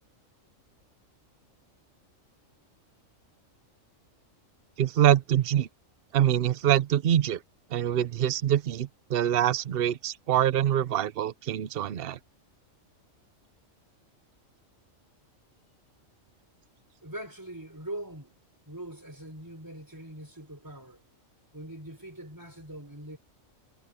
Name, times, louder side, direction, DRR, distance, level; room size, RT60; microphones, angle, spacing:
voice 1, 4.8-5.7 6.1-7.4 7.7-12.2, right 11 dB, 55° right, 0.8 m, -25 dB
voice 2, 17.0-18.3 18.7-21.0 21.5-23.2, right 1 dB, 15° right, 4.6 m, -42 dB
omnidirectional pair, 1.4 m